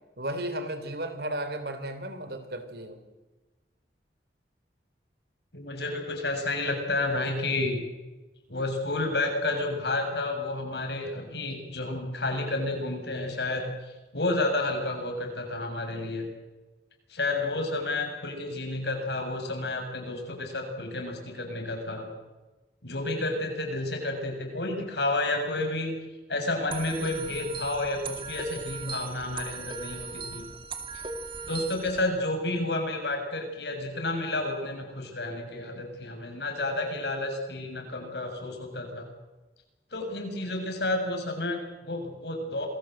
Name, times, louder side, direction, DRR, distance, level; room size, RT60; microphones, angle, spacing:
voice 1, 0.2-3.0, right 1 dB, 60° right, 10 dB, 3.6 m, -34 dB
voice 2, 5.5-7.8 8.5-13.7 14.1-16.3 17.1-22.1 22.8-26.0 26.3-30.4 30.9-31.0 31.4-39.1 39.9-42.7, left 2 dB, 70° left, 3 dB, 7.0 m, -30 dB
sound 1, 26.7-32.0, right 4 dB, 30° right, 2.3 m, -38 dB
27.5 x 21.0 x 7.9 m, 1.1 s
head